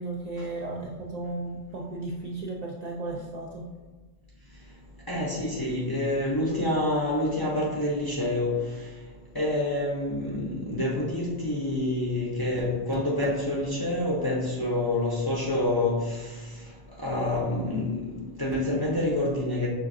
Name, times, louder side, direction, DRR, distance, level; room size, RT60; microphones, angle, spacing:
voice 1, 0.0-3.6, right 2 dB, 55° right, 0.4 m, -35 dB
voice 2, 5.1-8.6 9.3-16.0 17.0-18.0 18.4-19.7, left 1 dB, 30° left, 0.5 m, -27 dB
5.6 x 2.5 x 2.5 m
omnidirectional pair, 1.1 m